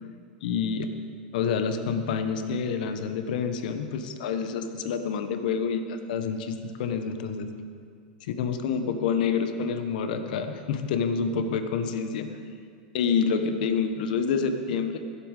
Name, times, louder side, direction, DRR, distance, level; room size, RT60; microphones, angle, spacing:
voice 1, 0.4-0.9 1.3-7.5 8.2-12.3 12.9-15.0, left 6 dB, 65° left, 8 dB, 1.2 m, -28 dB
14.5 x 8.5 x 6.6 m, 2.2 s
hypercardioid pair, 120°, 5 cm